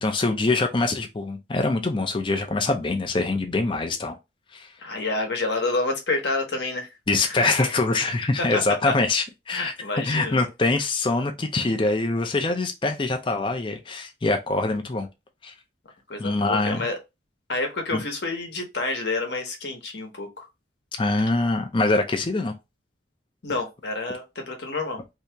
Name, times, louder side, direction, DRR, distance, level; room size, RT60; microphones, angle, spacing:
voice 1, 0.0-4.1 4.5-4.7 7.1-9.7 10.0-15.1 15.4-15.5 16.2-16.9 17.9-18.0 21.0-22.5, left 3 dB, 25° left, 0.4 m, -24 dB
voice 2, 4.8-6.9 7.3-7.7 8.4-8.9 9.5-10.5 16.1-17.0 17.5-20.5 23.4-25.0, left 2 dB, 60° left, 0.9 m, -29 dB
2.8 x 2.7 x 3.3 m
head